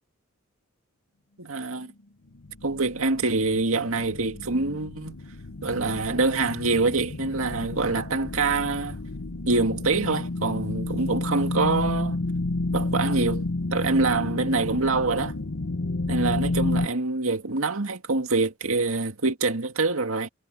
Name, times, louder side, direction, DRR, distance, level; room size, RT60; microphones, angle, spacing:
voice 1, 1.4-1.9 2.6-5.2 5.6-9.0 9.5-12.2 12.7-15.3 16.1-20.3, right 3 dB, 75° right, 2.1 m, -25 dB
sound 1, 2.3-16.9, left 2 dB, 75° left, 1.0 m, -31 dB
head